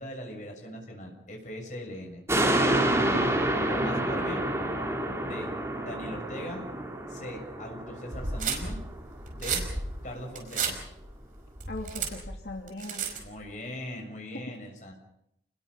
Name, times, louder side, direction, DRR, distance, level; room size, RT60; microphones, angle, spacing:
voice 1, 0.0-2.2 2.7-2.9 3.7-4.4 5.2-6.7 7.1-8.8 9.3-9.6 10.0-10.8 13.1-14.9, equal, 45° left, 1 dB, 7.0 m, -40 dB
sound 1, 2.3-8.9 9.4-9.5, right 1 dB, 15° right, 4.1 m, -28 dB
sound 2, 8.1-13.4, right 5 dB, 50° right, 5.2 m, -33 dB
voice 2, 11.7-13.0, left 1 dB, 75° left, 0 dB, 2.8 m, -39 dB
29.5 x 21.0 x 5.7 m, 0.79 s
head